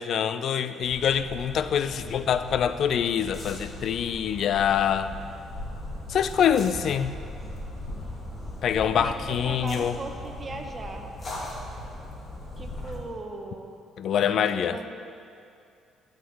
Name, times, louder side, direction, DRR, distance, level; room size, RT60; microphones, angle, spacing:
voice 1, 0.0-5.1 6.1-7.2 8.6-10.0 14.0-14.8, left 8 dB, 60° left, 12 dB, 0.4 m, -25 dB
sound 1, 0.8-13.0, left 1 dB, 35° left, 2.4 m, -39 dB
voice 2, 8.8-11.1 12.6-13.7 14.5-14.9, right 3 dB, 30° right, 4 dB, 1.1 m, -38 dB
14.0 x 6.5 x 3.5 m, 2.5 s
supercardioid pair, 75°, 0 cm